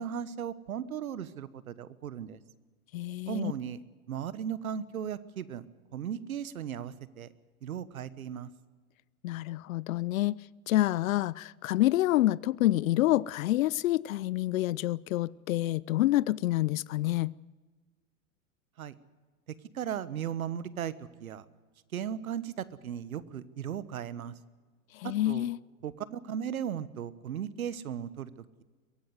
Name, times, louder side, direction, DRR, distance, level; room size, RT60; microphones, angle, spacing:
voice 1, 0.0-2.4 3.3-5.7 5.9-7.3 7.6-8.5 18.8-18.9 19.7-21.4 21.9-24.4 25.0-25.5 25.8-28.3, right 9 dB, 85° right, 1.3 m, -36 dB
voice 2, 2.9-3.5 9.2-10.4 10.7-17.3 24.9-25.6, left 15 dB, 75° left, 0.6 m, -27 dB
23.0 x 17.5 x 8.0 m
hypercardioid pair, 110°, 41 cm